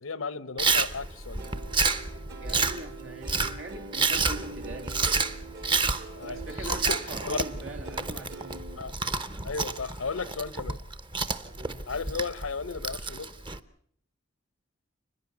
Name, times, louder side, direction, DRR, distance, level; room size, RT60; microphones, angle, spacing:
voice 1, 0.0-1.5 6.1-7.4 8.8-9.0 9.4-10.8 11.9-13.3, left 4 dB, 90° left, 0.9 m, -35 dB
Chewing mastication, 0.6-13.6, right 4 dB, 25° right, 0.8 m, -30 dB
Plucked string instrument, 1.4-8.8, right 3 dB, 55° right, 2.4 m, -44 dB
voice 2, 2.4-5.5 6.3-9.0 11.4-11.9, right 2 dB, 80° right, 3.1 m, -42 dB
29.5 x 10.5 x 8.4 m
head